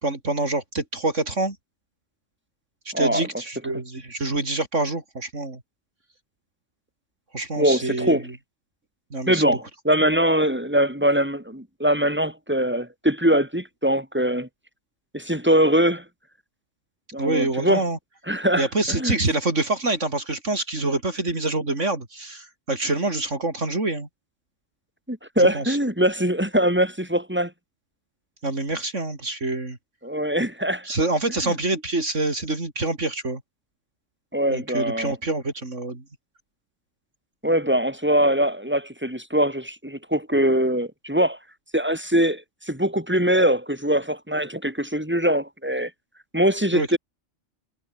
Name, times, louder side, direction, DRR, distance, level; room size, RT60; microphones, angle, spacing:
voice 1, 0.0-1.6 2.9-5.6 7.3-8.2 9.1-9.4 17.2-18.0 18.6-24.1 25.4-25.8 28.4-29.8 30.8-33.4 34.5-36.0 46.7-47.0, right 2 dB, 65° right, 4.4 m, -26 dB
voice 2, 2.9-3.3 7.6-8.3 9.3-14.5 15.1-16.0 17.1-17.8 18.3-19.2 25.1-27.5 30.0-30.9 31.4-31.5 34.3-35.1 37.4-41.4 41.7-45.9 46.3-47.0, right 1 dB, 10° right, 7.0 m, -22 dB
omnidirectional pair, 1.3 m